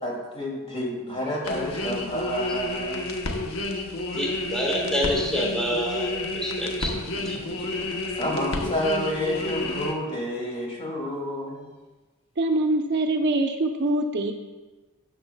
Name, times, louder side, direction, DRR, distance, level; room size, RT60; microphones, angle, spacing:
voice 1, 0.0-3.1 7.2-7.4 8.2-11.7, equal, 30° left, -2 dB, 2.5 m, -29 dB
sound 1, 1.4-9.9, left 2 dB, 70° left, 1.0 m, -30 dB
voice 2, 4.1-6.9 7.2-7.4, equal, 5° left, -2 dB, 1.5 m, -27 dB
voice 3, 12.4-14.3, right 2 dB, 55° right, 5 dB, 0.6 m, -24 dB
12.5 x 7.8 x 2.3 m, 1.2 s
head